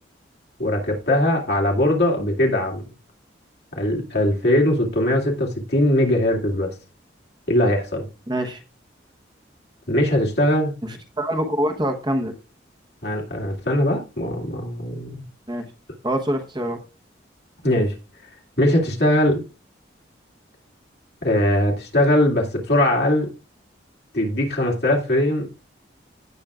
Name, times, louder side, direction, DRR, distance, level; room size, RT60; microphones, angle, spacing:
voice 1, 0.6-2.8 3.7-6.7 7.5-8.1 9.9-10.7 13.0-15.2 17.6-17.9 18.6-19.4 21.2-23.3 24.1-25.5, left 1 dB, 60° left, 0 dB, 2.4 m, -20 dB
voice 2, 8.3-8.6 10.8-12.3 15.5-15.6 16.0-16.8, equal, 25° right, 5 dB, 1.0 m, -25 dB
16.5 x 6.3 x 2.4 m, 0.31 s
head